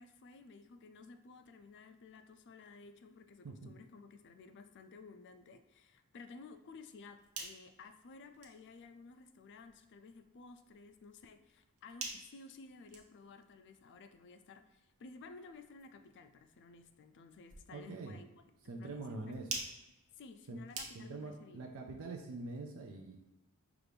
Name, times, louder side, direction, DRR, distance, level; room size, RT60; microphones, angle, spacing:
voice 1, 0.0-18.3 18.6-19.4 20.2-21.6, left 4 dB, 55° left, 8 dB, 0.4 m, -55 dB
sound 1, 7.1-21.4, right 4 dB, 85° right, 0.9 m, -51 dB
voice 2, 17.7-18.2 18.7-19.5 20.5-20.6 20.9-23.2, right 3 dB, 65° right, 1 dB, 0.5 m, -44 dB
5.9 x 2.4 x 3.4 m, 1.0 s
head